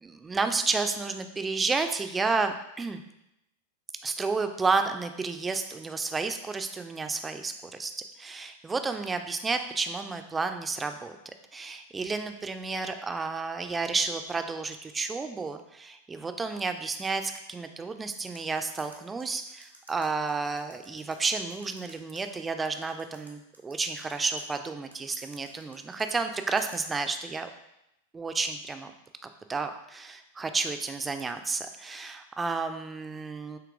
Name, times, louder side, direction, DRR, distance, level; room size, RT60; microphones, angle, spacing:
voice 1, 0.0-3.0 4.0-7.5 7.8-7.9 8.2-11.2 11.5-27.5 28.1-28.9 29.2-33.6, right 4 dB, 15° right, 7 dB, 0.4 m, -31 dB
sound 1, 18.3-22.2 22.7-24.4 24.9-26.9, right 1 dB, 85° right, 0.7 m, -52 dB
6.7 x 2.9 x 2.5 m, 0.85 s
figure-of-eight pair, 90°, 0 cm